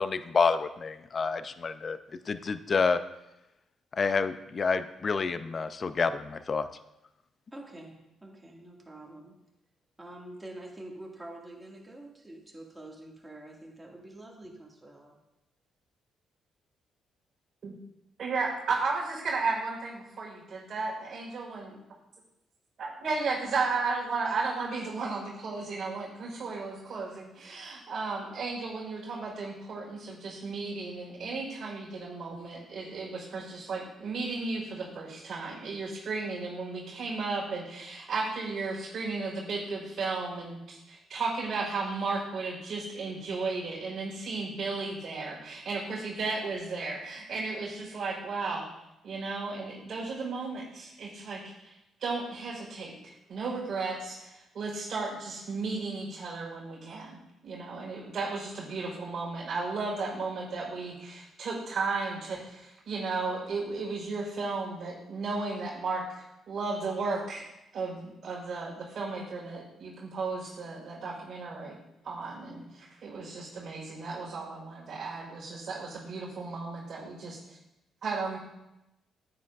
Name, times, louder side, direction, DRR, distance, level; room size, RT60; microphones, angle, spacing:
voice 1, 0.0-2.0 2.3-3.0 4.0-6.7, left 5 dB, 40° left, 12 dB, 0.4 m, -28 dB
voice 2, 7.5-9.4 10.0-15.2, right 1 dB, 15° right, -2 dB, 1.9 m, -46 dB
voice 3, 18.2-21.8 22.8-48.6 49.0-51.7 52.0-67.4 67.7-71.8 72.0-77.6 78.0-78.4, right 4 dB, 55° right, -6 dB, 1.9 m, -34 dB
9.4 x 7.7 x 2.4 m, 0.91 s
cardioid pair, 90°, 0 cm